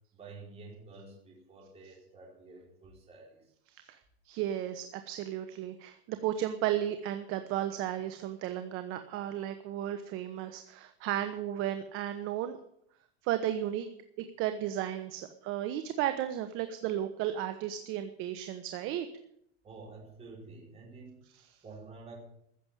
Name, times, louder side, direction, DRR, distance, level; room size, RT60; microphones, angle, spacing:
voice 1, 0.1-3.5 19.6-21.2 21.6-22.2, right 3 dB, 20° right, -3 dB, 4.5 m, -50 dB
voice 2, 4.2-12.6 13.2-13.9 14.2-19.1, right 11 dB, 45° right, 9 dB, 1.2 m, -34 dB
15.0 x 7.1 x 9.8 m, 0.72 s
supercardioid pair, 145°, 30 cm